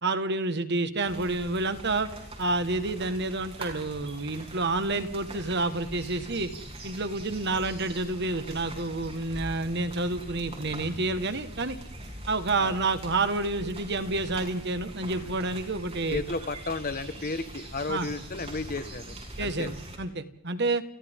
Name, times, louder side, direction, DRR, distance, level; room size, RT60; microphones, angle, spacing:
voice 1, 0.0-2.1 2.4-6.5 6.8-11.8 12.3-16.2 17.9-18.1 19.4-20.8, right 2 dB, 50° right, 10 dB, 1.6 m, -29 dB
sound 1, 1.0-20.0, right 1 dB, 30° right, 6.1 m, -42 dB
voice 2, 16.1-19.7, left 3 dB, 40° left, 11 dB, 1.4 m, -33 dB
29.5 x 29.5 x 3.7 m, 0.76 s
head